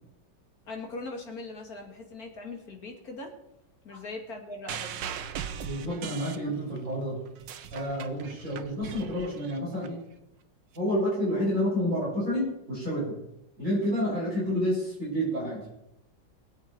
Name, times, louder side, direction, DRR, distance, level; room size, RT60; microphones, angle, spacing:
voice 1, 0.7-3.3 3.8-5.1, left 2 dB, 50° left, 2 dB, 2.7 m, -40 dB
sound 1, 4.7-6.9 7.3-9.9 10.7-10.8, right 8 dB, 75° right, 1.5 m, -39 dB
voice 2, 5.6-7.2 7.7-10.0 10.8-13.2 13.6-15.6, equal, 45° right, -7 dB, 7.1 m, -29 dB
23.0 x 7.9 x 4.6 m, 0.86 s
omnidirectional pair, 2.0 m